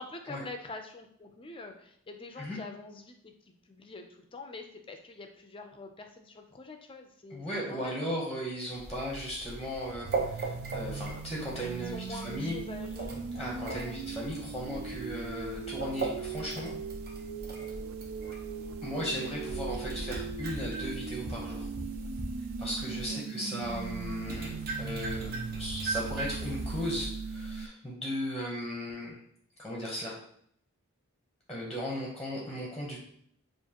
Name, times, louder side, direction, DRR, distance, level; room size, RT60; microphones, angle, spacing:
voice 1, 0.0-3.3 3.7-7.9 11.8-13.2 13.6-14.0 22.9-23.2, left 3 dB, 25° left, 5 dB, 0.5 m, -45 dB
voice 2, 7.3-12.6 13.3-16.7 18.8-21.7 22.6-29.2 29.6-30.1 31.5-33.0, equal, ahead, -3 dB, 0.9 m, -36 dB
sound 1, 8.7-23.1 23.6-27.1, right 3 dB, 45° right, 0.8 m, -40 dB
sound 2, 10.1-27.7, right 5 dB, 60° right, 0.3 m, -39 dB
sound 3, 10.8-20.3, equal, 90° left, 0.6 m, -53 dB
7.1 x 2.5 x 2.9 m, 0.67 s
head